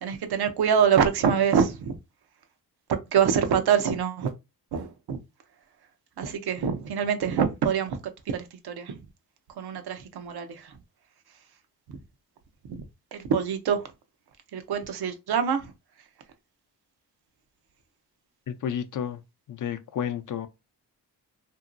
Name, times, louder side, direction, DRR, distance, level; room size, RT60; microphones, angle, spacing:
voice 1, 0.0-2.0 2.9-4.3 4.7-5.2 6.2-8.0 8.3-9.1 9.5-10.8 11.9-12.0 12.7-12.9 13.1-13.9 14.5-15.7 16.0-16.1, right 7 dB, 85° right, 0.6 m, -25 dB
voice 2, 18.5-19.2 19.5-20.5, left 8 dB, 55° left, 0.4 m, -31 dB
2.9 x 2.6 x 2.4 m
wide cardioid pair, 120°, 38 cm